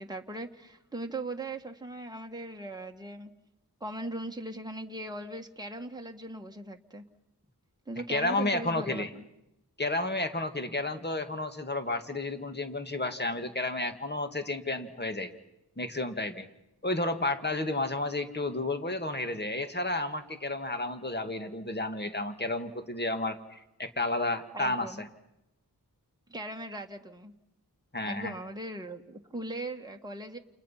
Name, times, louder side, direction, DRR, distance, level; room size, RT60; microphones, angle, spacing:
voice 1, 0.0-3.3 3.8-7.0 7.9-9.3 24.5-25.0 26.3-27.3 28.0-30.4, right 2 dB, 10° right, 3 dB, 1.7 m, -39 dB
voice 2, 8.1-9.1 9.8-15.3 15.8-16.5 16.8-24.9 27.9-28.3, left 2 dB, 25° left, 7 dB, 2.1 m, -31 dB
29.5 x 29.0 x 5.8 m, 0.86 s
wide cardioid pair, 75°, 38 cm